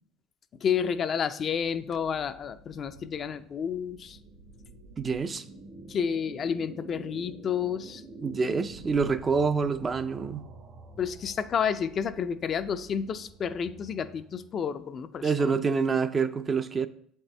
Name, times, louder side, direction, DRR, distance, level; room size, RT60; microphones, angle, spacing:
voice 1, 0.6-4.2 5.9-8.0 11.0-15.5, left 7 dB, 45° left, 0.4 m, -30 dB
sound 1, 1.5-14.6, right 2 dB, 60° right, 1.2 m, -48 dB
voice 2, 5.0-5.4 8.2-10.5 15.2-16.9, right 5 dB, 30° right, 0.4 m, -27 dB
7.4 x 4.3 x 3.3 m
supercardioid pair, 90°, 0 cm